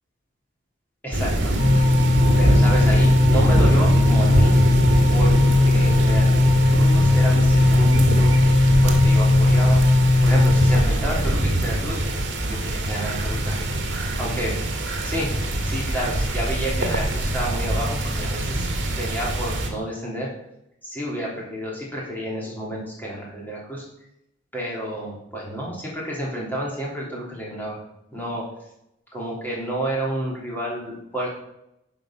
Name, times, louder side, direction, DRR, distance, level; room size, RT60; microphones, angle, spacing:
voice 1, 1.0-1.5 2.4-4.5 5.1-5.3 5.6-6.3 6.7-9.8 10.2-12.0 12.4-15.3 15.6-18.7 19.0-20.3 20.8-23.9 24.5-27.8 28.1-28.4 29.1-31.4, right 1 dB, 10° left, -4 dB, 3.1 m, -30 dB
sound 1, 1.1-19.7, right 1 dB, 65° right, 1.8 m, -23 dB
sound 2, 1.6-10.8, left 2 dB, 70° left, 1.7 m, -17 dB
11.0 x 5.2 x 5.8 m, 0.83 s
head